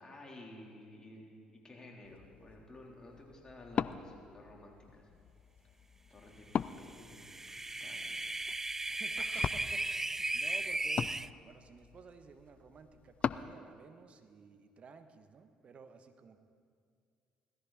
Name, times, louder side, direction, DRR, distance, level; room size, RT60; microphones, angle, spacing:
voice 1, 0.0-5.1 6.1-8.2, left 1 dB, 25° left, -1 dB, 3.8 m, -53 dB
Wood, 2.0-13.5, left 7 dB, 45° left, 0.4 m, -42 dB
sound 1, 7.0-11.3, right 2 dB, 15° right, 0.4 m, -36 dB
voice 2, 9.0-9.9 10.2-11.2 11.4-16.4, right 5 dB, 45° right, 8 dB, 1.2 m, -54 dB
18.0 x 14.0 x 4.3 m, 2.2 s
hypercardioid pair, 55°, 3 cm